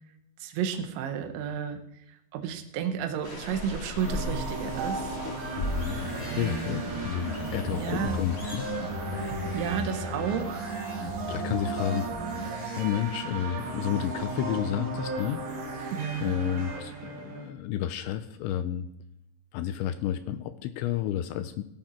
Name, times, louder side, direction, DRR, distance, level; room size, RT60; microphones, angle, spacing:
voice 1, 0.4-1.8 2.1-5.2 5.9-6.7 7.7-8.2 9.2-10.7 15.9-16.3, right 8 dB, 75° right, 6 dB, 3.3 m, -32 dB
sound 1, 3.2-9.8, left 1 dB, 55° left, 0.9 m, -37 dB
sound 2, 4.0-17.5, right 3 dB, 60° right, 4.2 m, -35 dB
voice 2, 5.6-8.7 11.3-12.3 12.7-15.5 16.2-18.9 19.5-21.7, left 11 dB, 80° left, 10 dB, 2.8 m, -31 dB
sound 3, 5.9-12.8, left 3 dB, 5° left, 3.2 m, -39 dB
17.5 x 11.0 x 4.5 m, 0.81 s
omnidirectional pair, 5.6 m